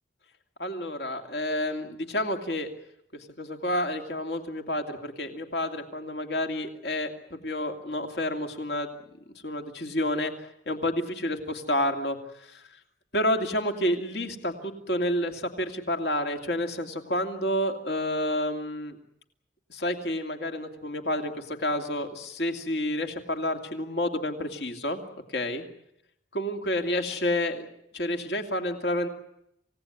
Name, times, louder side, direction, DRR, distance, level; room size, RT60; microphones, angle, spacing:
voice 1, 0.6-2.7 3.1-8.9 9.4-10.3 10.7-12.6 13.1-19.0 19.7-25.0 25.3-25.6 26.3-27.6 27.9-29.1, left 1 dB, 60° left, 4 dB, 2.7 m, -29 dB
28.0 x 17.5 x 9.7 m, 0.78 s
head